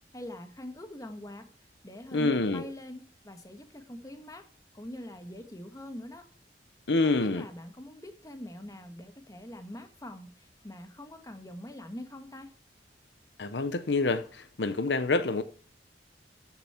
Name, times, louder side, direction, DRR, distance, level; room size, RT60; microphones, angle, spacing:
voice 1, 0.1-1.5 1.8-4.5 4.7-6.2 7.0-12.5, left 1 dB, 20° left, 1.4 m, -43 dB
voice 2, 2.1-2.6 6.9-7.4 13.4-15.4, left 3 dB, 75° left, 0.8 m, -27 dB
13.5 x 7.0 x 4.4 m
head